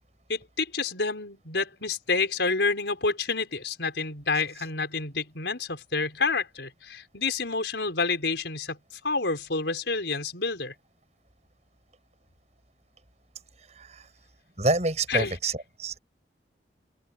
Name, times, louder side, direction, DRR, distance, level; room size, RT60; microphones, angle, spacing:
voice 1, 0.3-10.7 15.1-15.4, left 4 dB, 80° left, 4.8 m, -29 dB
voice 2, 13.8-14.1 14.6-16.0, right 2 dB, 40° right, 7.4 m, -27 dB
open air
head